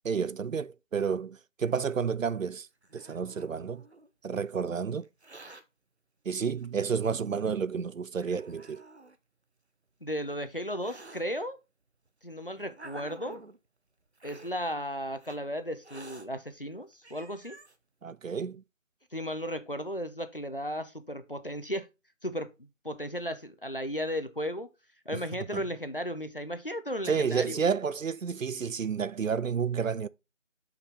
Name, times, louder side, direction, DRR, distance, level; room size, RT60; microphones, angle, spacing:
voice 1, 0.0-2.7 2.9-3.8 4.2-5.1 6.3-8.9 18.0-18.6 25.1-25.2 25.5-25.6 27.1-30.1, right 6 dB, 80° right, 0.6 m, -30 dB
Hiss, 2.4-4.1 5.0-5.6 6.6-6.7 7.5-7.6 8.1-9.2 10.0-11.2 12.1-13.6 14.2-14.5 15.2-15.4 15.8-16.3 16.7-16.8 17.0-17.8, right 2 dB, 55° right, 0.9 m, -50 dB
voice 2, 10.0-11.6 12.2-13.4 14.2-17.6 19.1-21.9 22.2-22.5 22.8-24.7 25.1-27.6, equal, 45° left, 0.8 m, -35 dB
6.0 x 5.1 x 5.4 m
figure-of-eight pair, 175°, 39 cm